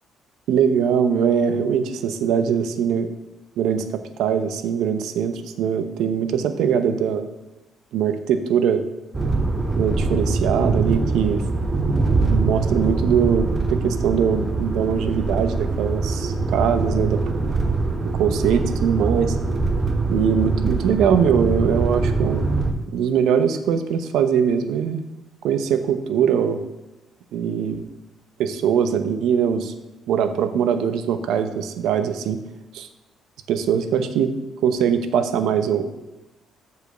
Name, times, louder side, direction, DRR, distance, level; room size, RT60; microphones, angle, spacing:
voice 1, 0.5-3.1 3.6-3.8 4.2-7.3 7.9-8.8 9.8-11.4 12.2-17.2 18.2-19.4 20.1-22.5 22.9-25.0 25.4-26.6 27.3-27.8 28.4-29.7 30.1-32.4 32.7-32.9 33.5-34.3 34.6-36.0, right 7 dB, 85° right, 10 dB, 0.7 m, -21 dB
sound 1, 9.1-22.7, right 3 dB, 30° right, 1.0 m, -23 dB
6.8 x 5.1 x 6.7 m, 1.0 s
cardioid pair, 95°, 0 cm